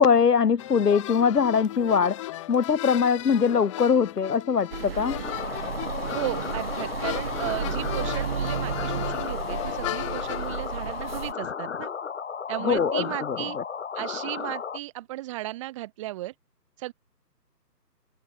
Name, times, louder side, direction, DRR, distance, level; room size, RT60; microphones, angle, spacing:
voice 1, 0.0-5.2 12.6-13.4, left 6 dB, 70° left, 1.1 m, -22 dB
sound 1, 0.6-10.5, left 16 dB, 20° left, 2.9 m, -36 dB
sound 2, 4.7-11.3, right 7 dB, 35° right, 2.4 m, -33 dB
sound 3, 5.2-14.8, left 6 dB, 45° left, 3.9 m, -34 dB
voice 2, 6.1-11.9 12.5-13.6 13.9-16.3 16.8-16.9, right 17 dB, 20° right, 3.2 m, -35 dB
figure-of-eight pair, 155°, 50 cm